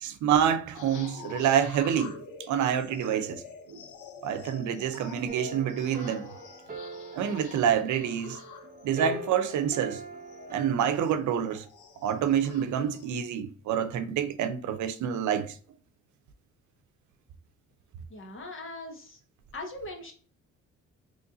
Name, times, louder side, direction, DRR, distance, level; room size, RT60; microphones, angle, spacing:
voice 1, 0.0-2.1 2.5-3.4 3.7-3.8 4.2-6.3 7.1-8.4 8.8-10.0 10.5-11.6 12.0-15.6, right 9 dB, 75° right, 0.6 m, -27 dB
sound 1, 0.7-13.1, left 5 dB, 85° left, 0.7 m, -47 dB
sound 2, 5.3-11.0, right 2 dB, 30° right, 0.8 m, -42 dB
voice 2, 18.1-19.2 19.5-20.1, left 2 dB, 40° left, 1.2 m, -40 dB
3.1 x 2.6 x 3.8 m
cardioid pair, 90°, 30 cm